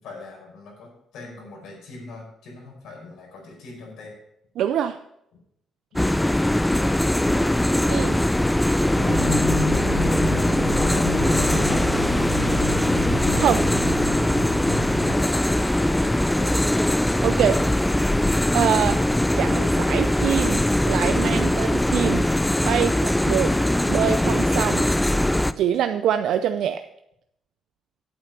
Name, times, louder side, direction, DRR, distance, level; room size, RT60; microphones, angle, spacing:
voice 1, 0.0-4.1 10.7-11.9 15.1-16.7 17.5-18.2, left 3 dB, 85° left, -1 dB, 4.9 m, -40 dB
voice 2, 4.6-5.0 7.9-8.2 13.3-13.6 17.2-17.6 18.5-19.0 19.3-22.2 22.6-23.5 23.9-24.8 25.6-26.8, right 9 dB, 75° right, 9 dB, 0.4 m, -24 dB
sound 1, 6.0-25.5, left 1 dB, 5° left, 0.5 m, -21 dB
sound 2, 8.9-15.1, left 1 dB, 65° left, 5.1 m, -29 dB
8.8 x 8.3 x 5.8 m, 0.78 s
cardioid pair, 90°, 0 cm